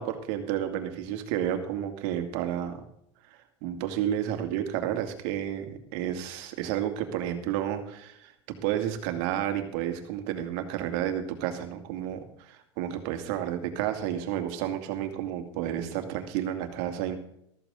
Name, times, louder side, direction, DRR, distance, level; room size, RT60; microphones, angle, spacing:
voice 1, 0.0-2.8 3.3-17.1, right 11 dB, 60° right, 6 dB, 2.4 m, -31 dB
14.0 x 14.0 x 3.9 m, 0.73 s
hypercardioid pair, 95°, 16 cm